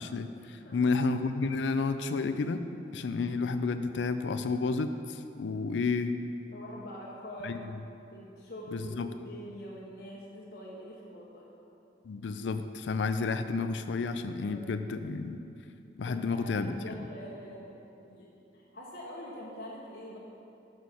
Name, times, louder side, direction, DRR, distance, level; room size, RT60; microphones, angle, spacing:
voice 1, 0.0-2.7 2.9-6.2 7.4-7.7 8.7-9.1 12.0-15.4 16.0-16.8, left 4 dB, 90° left, 10 dB, 0.4 m, -31 dB
voice 2, 6.5-11.5 14.4-14.6 16.1-20.2, equal, 60° left, -5 dB, 1.0 m, -45 dB
6.4 x 6.3 x 5.5 m, 2.7 s
head